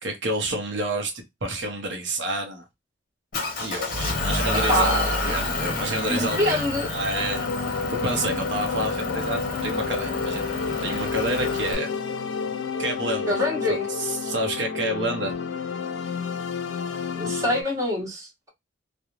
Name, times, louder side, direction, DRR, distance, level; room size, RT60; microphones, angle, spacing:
voice 1, 0.0-2.6 3.6-6.6 6.9-7.5 7.9-10.5 10.8-11.9 12.8-13.4 13.7-15.3, right 1 dB, 70° right, 0.6 m, -29 dB
Motor vehicle (road) / Engine, 3.3-11.7, left 2 dB, 50° left, 0.8 m, -29 dB
voice 2, 4.7-5.0 6.1-6.9 13.3-13.9 16.7-18.5, left 1 dB, 15° right, 1.0 m, -25 dB
sound 1, 7.2-17.6, left 5 dB, 85° left, 0.4 m, -30 dB
2.4 x 2.0 x 2.9 m
head